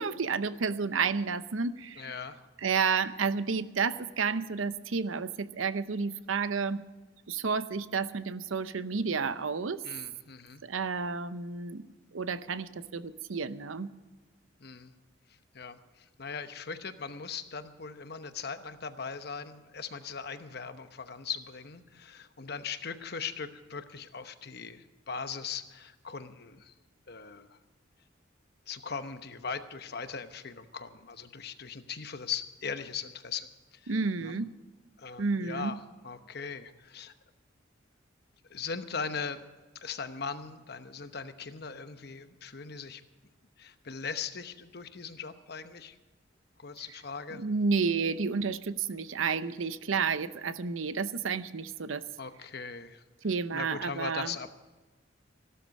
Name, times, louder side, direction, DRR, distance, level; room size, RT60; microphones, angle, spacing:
voice 1, 0.0-2.1 2.6-6.8 7.3-9.8 10.6-11.8 12.1-13.9 33.9-34.5 35.2-35.7 47.3-52.0 53.2-54.5, right 5 dB, 85° right, 14 dB, 0.7 m, -31 dB
voice 2, 2.0-2.4 9.8-10.6 14.6-14.9 15.5-26.7 27.1-27.6 28.7-33.9 34.2-34.3 35.0-35.8 36.0-37.1 38.5-39.4 39.8-43.0 43.6-46.0 46.6-47.4 52.2-53.0 53.5-54.5, left 5 dB, 55° left, 10 dB, 1.0 m, -39 dB
16.5 x 12.5 x 5.3 m, 1.3 s
head